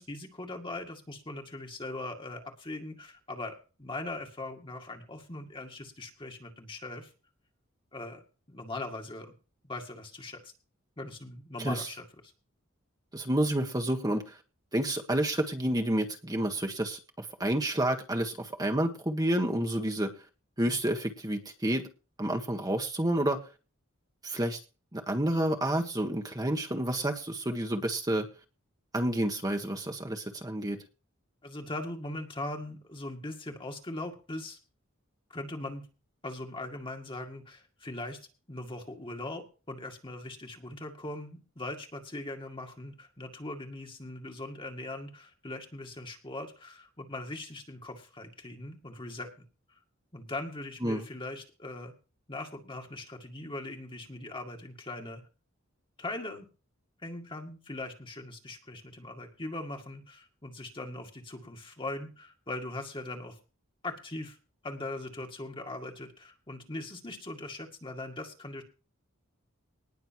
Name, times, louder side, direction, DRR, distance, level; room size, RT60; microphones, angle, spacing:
voice 1, 0.0-7.1 7.9-9.3 9.6-10.5 11.0-12.1 20.6-20.8 31.4-34.6 35.3-35.8 36.2-38.2 38.5-49.3 50.1-51.9 52.3-55.2 56.0-56.5 57.0-63.4 63.8-64.4 64.6-68.6, left 2 dB, 25° left, 3 dB, 2.1 m, -40 dB
voice 2, 13.1-14.4 14.7-20.1 20.6-21.8 22.2-23.4 24.2-24.6 24.9-28.3 28.9-30.8 50.8-51.0, right 1 dB, 20° right, 3 dB, 1.6 m, -29 dB
19.5 x 6.7 x 4.6 m, 0.33 s
head